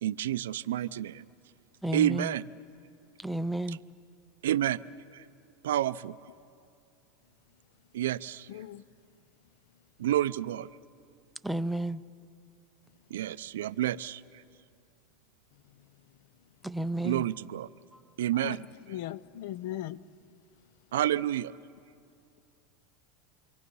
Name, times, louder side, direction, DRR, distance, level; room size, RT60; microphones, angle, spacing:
voice 1, 0.0-1.2 1.9-2.5 3.7-3.8 4.4-4.8 5.1-5.2 5.6-6.2 7.9-8.5 10.0-10.7 13.1-14.2 17.0-17.7 18.2-18.6 20.9-21.6, right 12 dB, 85° right, 0.4 m, -29 dB
voice 2, 1.8-2.3 3.2-3.8 11.4-12.0 16.6-17.2, right 1 dB, ahead, 0.5 m, -31 dB
voice 3, 8.5-8.8 18.4-18.6 18.9-20.0, left 12 dB, 70° left, 0.6 m, -38 dB
29.0 x 24.0 x 5.5 m
supercardioid pair, 120°, 0 cm